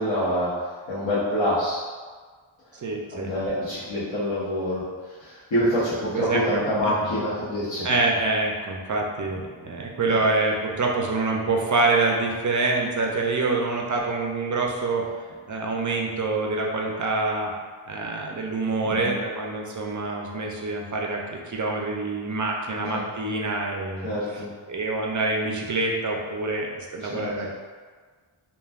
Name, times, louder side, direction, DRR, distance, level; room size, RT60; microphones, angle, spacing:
voice 1, 0.0-1.8 3.1-7.9 10.0-10.2 18.8-19.1 22.8-23.0 24.0-24.5 27.1-27.5, equal, 65° left, -13 dB, 1.0 m, -26 dB
voice 2, 2.7-3.3 6.1-7.1 7.8-15.0 15.5-17.5 17.9-24.1 24.7-27.5, right 3 dB, 40° right, -1 dB, 0.5 m, -26 dB
3.2 x 2.2 x 2.3 m, 1.5 s
wide cardioid pair, 60°, 49 cm